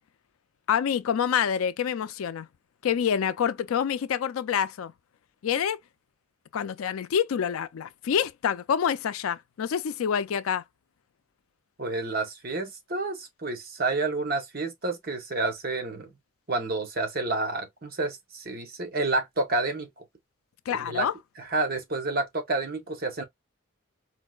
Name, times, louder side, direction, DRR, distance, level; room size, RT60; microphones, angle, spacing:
voice 1, 0.7-2.5 2.8-4.9 5.4-5.8 6.5-10.6 20.7-21.1, left 8 dB, 85° left, 0.4 m, -27 dB
voice 2, 11.8-16.1 16.5-20.0 20.7-21.1 21.4-23.2, right 3 dB, 45° right, 0.9 m, -29 dB
4.3 x 2.1 x 2.3 m
head